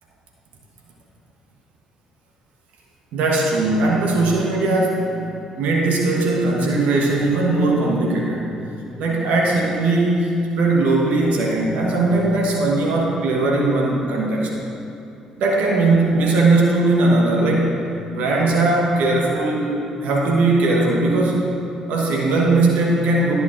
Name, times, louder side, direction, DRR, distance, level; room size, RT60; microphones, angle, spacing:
voice 1, 3.1-5.3 5.6-8.5 9.0-14.5 15.4-17.7 18.1-21.4 21.9-23.3, right 2 dB, 70° right, -2 dB, 1.2 m, -19 dB
13.0 x 6.6 x 2.6 m, 2.9 s
hypercardioid pair, 50°, 3 cm